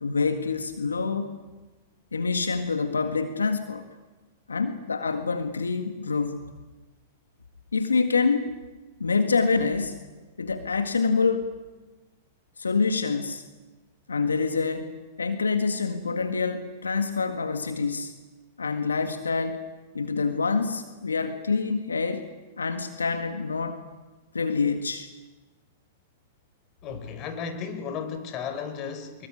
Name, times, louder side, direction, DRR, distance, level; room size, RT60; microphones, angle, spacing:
voice 1, 0.0-1.4 2.1-3.8 4.5-6.4 7.7-8.5 9.0-10.0 10.4-11.5 12.6-13.4 14.1-14.9 15.2-18.1 18.6-19.6 19.9-22.3 22.6-23.8 24.3-25.1, left 4 dB, 85° left, 8 dB, 1.8 m, -26 dB
voice 2, 26.8-29.3, left 6 dB, 40° left, 9 dB, 4.8 m, -34 dB
25.5 x 22.0 x 9.8 m, 1.2 s
hypercardioid pair, 105°, 0 cm